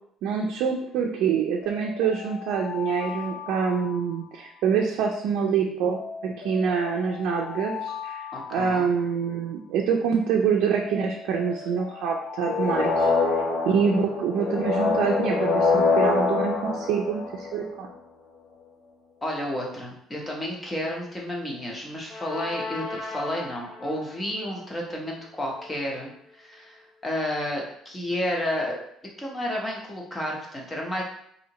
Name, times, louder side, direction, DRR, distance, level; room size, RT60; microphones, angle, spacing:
voice 1, 0.2-13.1 13.7-17.9, right 6 dB, 70° right, 0 dB, 0.4 m, -26 dB
sound 1, 1.6-4.8 5.9-9.7 10.8-14.0, left 7 dB, 80° left, 0.4 m, -38 dB
voice 2, 8.3-8.9 19.2-28.8 29.2-31.0, left 1 dB, 15° left, -1 dB, 0.7 m, -31 dB
sound 2, 12.4-17.8 22.1-23.8, left 4 dB, 55° left, 0.8 m, -25 dB
4.2 x 2.7 x 2.8 m, 0.71 s
cardioid pair, 160°, 0 cm